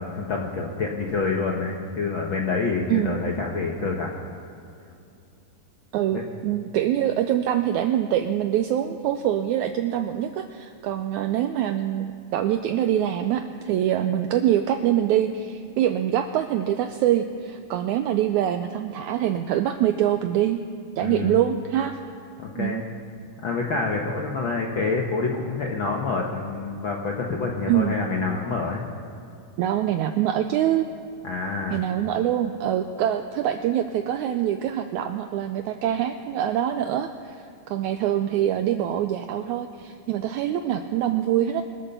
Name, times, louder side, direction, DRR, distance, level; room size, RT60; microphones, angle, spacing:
voice 1, 0.0-4.1 6.1-6.2 21.0-21.4 22.4-22.8 23.4-28.8 31.2-31.8, left 4 dB, 80° left, 0 dB, 1.1 m, -27 dB
voice 2, 2.9-3.2 5.9-20.6 21.0-21.9 22.6-22.8 27.7-27.9 29.6-30.8 31.7-41.6, right 11 dB, 85° right, 7 dB, 1.7 m, -24 dB
23.5 x 8.4 x 6.8 m, 2.6 s
omnidirectional pair, 3.9 m